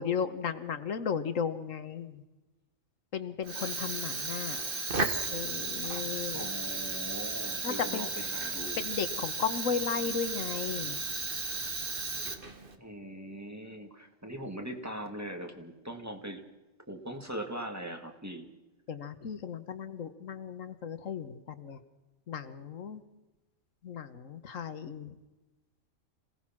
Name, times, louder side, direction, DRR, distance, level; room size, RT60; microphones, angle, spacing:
voice 1, 0.0-2.2 3.1-4.6 5.3-6.5 7.6-8.1 8.8-11.0 18.9-21.8 22.3-23.0 23.8-25.1, left 6 dB, 80° left, 10 dB, 1.5 m, -35 dB
Fire, 3.4-12.8, right 3 dB, 45° right, 1.8 m, -34 dB
voice 2, 6.3-8.9 12.8-16.4 16.9-18.5, right 1 dB, 10° right, 3 dB, 2.2 m, -41 dB
26.5 x 17.5 x 6.1 m, 1.1 s
omnidirectional pair, 1.3 m